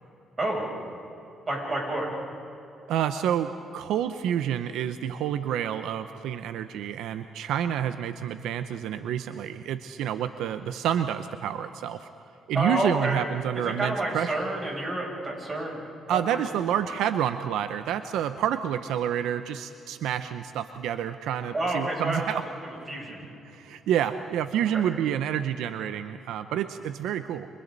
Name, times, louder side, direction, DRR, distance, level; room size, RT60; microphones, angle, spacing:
voice 1, 1.5-2.2 12.5-13.2 13.6-15.8 16.3-16.4 21.5-22.3 22.9-23.2 24.7-24.8, right 1 dB, 30° right, -2 dB, 7.5 m, -29 dB
voice 2, 2.9-12.1 12.5-14.4 16.1-22.4 23.5-27.5, right 9 dB, 85° right, 10 dB, 0.7 m, -29 dB
30.0 x 26.0 x 4.1 m, 2.8 s
cardioid pair, 90°, 0 cm